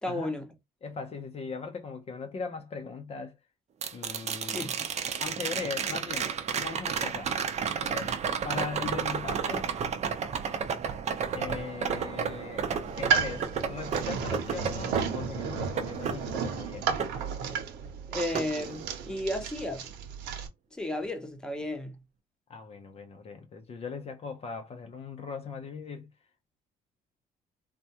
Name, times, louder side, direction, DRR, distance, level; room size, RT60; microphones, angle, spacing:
voice 1, 0.0-0.5 4.2-4.9 18.1-19.9 20.7-22.0, left 1 dB, 5° left, 0.8 m, -34 dB
voice 2, 0.8-3.4 3.9-4.7 5.2-7.3 7.8-8.1 8.4-9.7 11.3-12.6 12.9-16.9 22.5-26.1, left 5 dB, 35° left, 0.5 m, -39 dB
sound 1, 3.8-17.9 18.3-19.4 21.6-21.7, right 6 dB, 40° right, 0.6 m, -33 dB
sound 2, 12.8-20.5, right 6 dB, 90° right, 0.8 m, -33 dB
3.4 x 2.2 x 2.8 m
cardioid pair, 110°, 17 cm